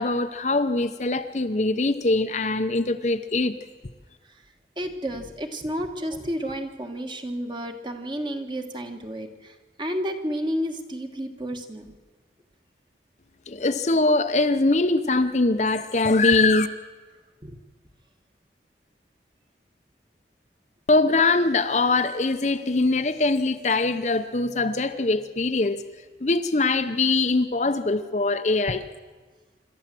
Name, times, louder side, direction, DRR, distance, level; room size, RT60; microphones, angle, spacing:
voice 1, 0.0-3.6 13.5-16.7 20.9-25.8 26.2-28.8, left 3 dB, 40° left, 9 dB, 0.7 m, -22 dB
voice 2, 4.8-11.9 17.4-17.6, equal, 25° right, 5 dB, 1.5 m, -31 dB
26.5 x 13.0 x 7.6 m, 1.3 s
head